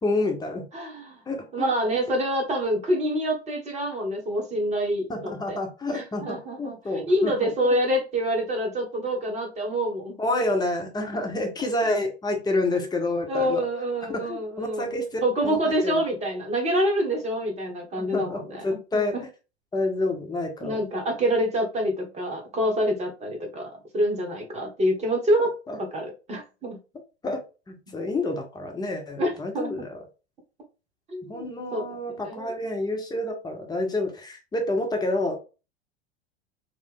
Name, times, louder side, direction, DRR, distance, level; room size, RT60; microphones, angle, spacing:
voice 1, 0.0-0.6 1.3-1.5 5.1-7.5 10.2-13.6 14.1-16.0 18.0-19.3 19.7-20.8 25.7-25.8 27.2-30.0 31.3-35.4, left 2 dB, 10° left, 2 dB, 1.3 m, -28 dB
voice 2, 0.7-1.2 1.5-5.6 5.9-10.2 12.7-12.8 13.3-19.2 20.6-25.5 25.9-26.8 29.2-29.9 31.1-31.8 32.2-32.5, equal, 20° right, 2 dB, 1.7 m, -27 dB
4.7 x 2.5 x 3.5 m, 0.31 s
figure-of-eight pair, 85°, 32 cm